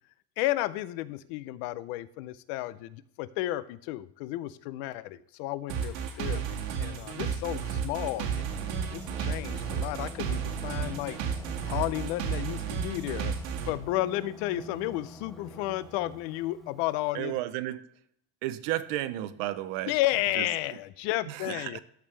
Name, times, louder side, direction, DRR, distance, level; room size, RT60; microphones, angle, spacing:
voice 1, 0.4-8.6 8.9-11.2 11.7-13.3 13.7-17.3 19.9-21.8, left 16 dB, 55° left, 0.5 m, -32 dB
Singing, 5.7-17.0, equal, ahead, 0.4 m, -47 dB
sound 1, 5.7-13.7, right 7 dB, 85° right, 2.0 m, -32 dB
voice 2, 17.1-17.8 18.4-20.0 20.3-20.5 21.3-21.8, right 14 dB, 55° right, 0.7 m, -33 dB
14.0 x 5.3 x 3.2 m
cardioid pair, 175°, 38 cm